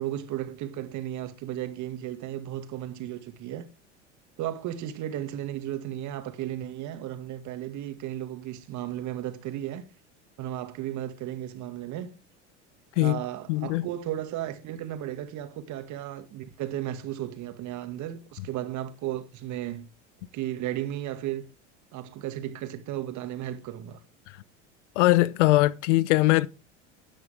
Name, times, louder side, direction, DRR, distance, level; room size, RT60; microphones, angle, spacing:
voice 1, 0.0-3.7 4.4-9.8 10.4-12.1 13.0-19.9 20.3-21.4 21.9-24.0, right 12 dB, 55° right, 2.0 m, -34 dB
voice 2, 13.5-13.9 25.0-26.5, left 18 dB, 75° left, 0.7 m, -21 dB
12.5 x 10.0 x 3.5 m
hypercardioid pair, 80°, 36 cm